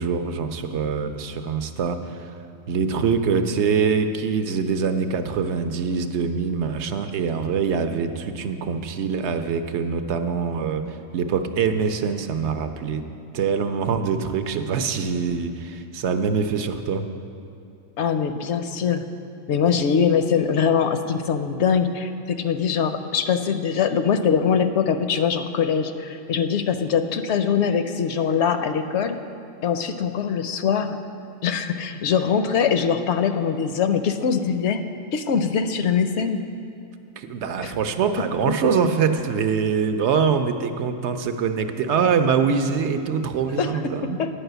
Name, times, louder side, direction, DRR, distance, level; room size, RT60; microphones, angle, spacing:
voice 1, 0.0-2.3 2.7-13.0 13.3-17.0 37.2-44.2, right 6 dB, 65° right, 8 dB, 0.8 m, -24 dB
voice 2, 18.0-19.0 19.5-29.2 29.6-31.0 31.4-34.8 35.1-36.4 37.6-37.7 43.6-43.9 44.2-44.3, left 7 dB, 65° left, 9 dB, 0.8 m, -22 dB
10.0 x 5.6 x 7.9 m, 2.7 s
omnidirectional pair, 1.3 m